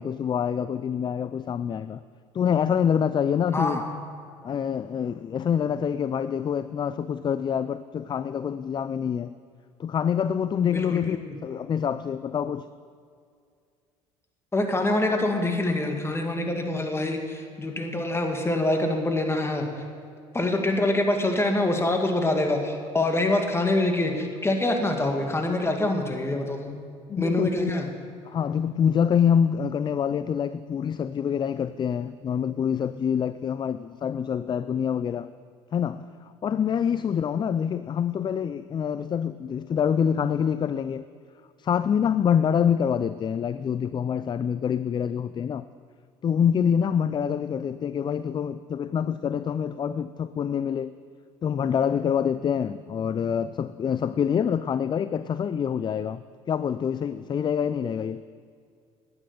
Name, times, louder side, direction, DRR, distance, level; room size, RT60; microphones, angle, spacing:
voice 1, 0.0-2.0 2.3-3.8 4.4-9.3 9.8-12.7 27.1-27.7 28.3-35.3 35.7-41.0 41.6-45.7 46.2-50.9 51.4-56.2 56.5-58.2, left 8 dB, 35° left, 14 dB, 0.4 m, -26 dB
voice 2, 3.5-3.9 10.7-11.4 14.5-19.7 20.3-26.7 27.2-27.9, left 2 dB, 20° left, 4 dB, 2.1 m, -25 dB
12.0 x 9.9 x 6.8 m, 2.2 s
supercardioid pair, 75°, 14 cm